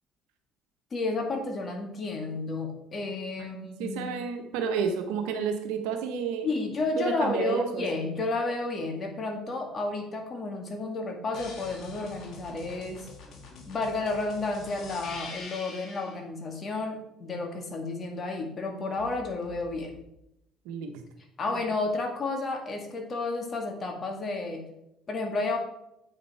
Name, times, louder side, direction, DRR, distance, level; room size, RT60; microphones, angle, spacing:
voice 1, 0.9-4.1 6.4-13.1 13.7-19.9 21.4-24.7 25.1-25.6, left 3 dB, 40° left, 3 dB, 1.9 m, -31 dB
voice 2, 3.8-6.5 7.0-7.8 20.6-20.9, right 6 dB, 85° right, 5 dB, 1.1 m, -30 dB
sound 1, 11.3-16.2 18.9-20.0, left 4 dB, 60° left, 1.8 m, -45 dB
8.6 x 5.4 x 4.2 m, 0.83 s
supercardioid pair, 80°, 0 cm